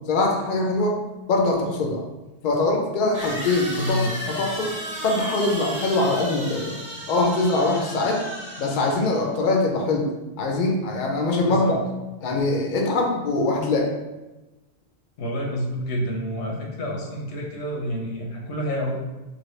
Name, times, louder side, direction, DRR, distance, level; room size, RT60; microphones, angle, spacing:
voice 1, 0.1-1.0 1.3-2.0 2.4-4.7 5.0-6.8 7.1-8.2 8.6-10.1 10.4-11.8 12.2-13.9, left 2 dB, 55° left, 1 dB, 0.6 m, -23 dB
sound 1, 3.1-9.3, equal, 15° right, 1.1 m, -34 dB
voice 2, 3.8-4.2 11.4-11.8 15.2-19.0, equal, 85° left, 0 dB, 1.0 m, -28 dB
2.9 x 2.6 x 3.1 m, 1.1 s
omnidirectional pair, 1.1 m